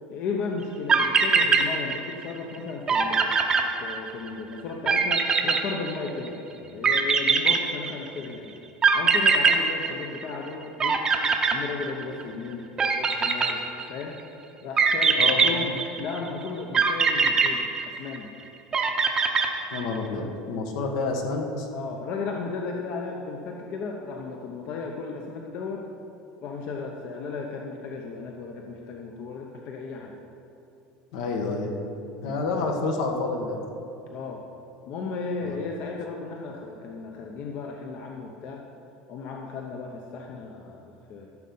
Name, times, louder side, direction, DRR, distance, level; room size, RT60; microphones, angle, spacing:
voice 1, 0.1-3.3 3.8-8.6 8.9-11.0 11.5-12.7 12.9-13.6 13.9-14.2 14.6-18.3 19.8-20.3 21.7-25.9 26.4-30.2 32.2-32.7 34.1-34.4 34.9-38.6 39.1-41.3, left 4 dB, 45° left, 1 dB, 0.8 m, -35 dB
sound 1, 0.6-0.7 0.9-2.3 2.5-2.6 2.9-4.3 4.9-6.3 6.8-8.2 8.8-10.5 10.8-12.2 12.8-14.0 14.8-16.2 16.7-18.3 18.7-20.0, right 5 dB, 20° right, 0.8 m, -22 dB
voice 2, 15.1-15.6 19.7-21.7 31.1-31.7 32.2-33.6 35.5-35.6, left 3 dB, 75° left, 2 dB, 1.7 m, -28 dB
14.0 x 6.5 x 5.5 m, 2.8 s
cardioid pair, 165°, 3 cm